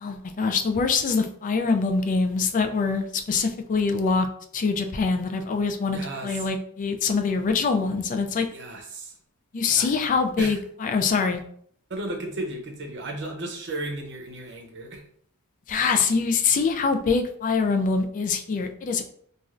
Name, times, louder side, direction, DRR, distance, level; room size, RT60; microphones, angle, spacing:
voice 1, 0.0-4.3 4.5-8.5 9.5-11.4 15.7-19.0, left 4 dB, 40° left, 6 dB, 0.3 m, -24 dB
voice 2, 5.9-6.4 8.5-9.1 9.7-9.9 10.4-10.6 11.9-15.0, right 2 dB, 55° right, 2 dB, 0.7 m, -34 dB
3.1 x 2.4 x 2.4 m, 0.63 s
head